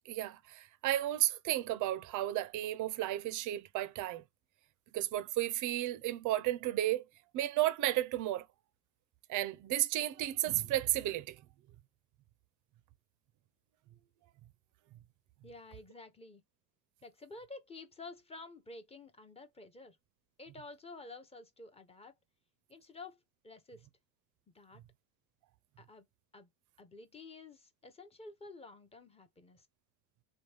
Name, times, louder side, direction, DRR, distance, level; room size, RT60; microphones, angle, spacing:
voice 1, 0.1-4.2 4.9-7.0 7.3-8.5 9.3-11.4, right 14 dB, 40° right, 0.5 m, -33 dB
voice 2, 15.4-16.4 17.0-20.0 20.4-22.1 22.7-23.9 24.5-24.8 25.8-26.0 26.3-26.5 26.8-29.7, left 3 dB, 15° left, 0.6 m, -51 dB
3.1 x 2.3 x 3.2 m
supercardioid pair, 110°, 47 cm